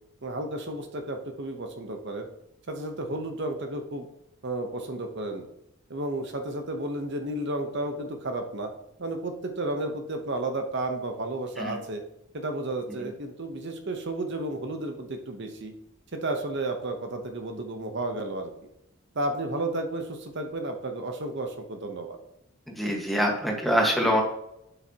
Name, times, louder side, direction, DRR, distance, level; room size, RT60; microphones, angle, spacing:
voice 1, 0.2-2.3 2.7-4.1 4.4-5.5 5.9-8.7 9.0-12.0 12.3-15.7 16.1-18.5 19.1-22.2, right 2 dB, 55° right, 5 dB, 0.9 m, -32 dB
voice 2, 22.7-24.2, equal, ahead, -1 dB, 1.5 m, -24 dB
9.0 x 8.0 x 2.9 m, 0.81 s
head